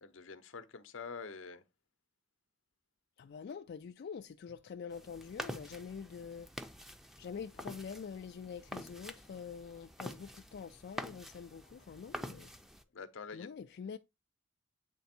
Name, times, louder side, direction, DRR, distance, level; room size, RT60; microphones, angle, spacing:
voice 1, 0.0-1.6 12.9-13.5, left 5 dB, 80° left, 0.7 m, -46 dB
voice 2, 3.2-6.5 7.2-12.5 13.3-14.0, left 6 dB, 60° left, 0.3 m, -45 dB
sound 1, 4.9-12.8, equal, ahead, 0.5 m, -47 dB
8.0 x 3.4 x 4.3 m
head